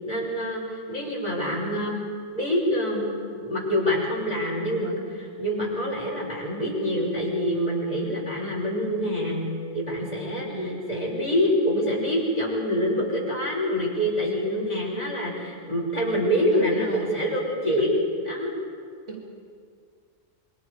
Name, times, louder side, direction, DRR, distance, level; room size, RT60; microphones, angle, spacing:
voice 1, 0.0-2.0 2.3-9.4 9.7-18.5, equal, 35° left, -5 dB, 6.5 m, -26 dB
voice 2, 10.3-10.8 16.5-17.1 19.1-19.2, right 2 dB, 90° right, -2 dB, 3.4 m, -33 dB
26.5 x 24.0 x 5.0 m, 2.1 s
omnidirectional pair, 1.2 m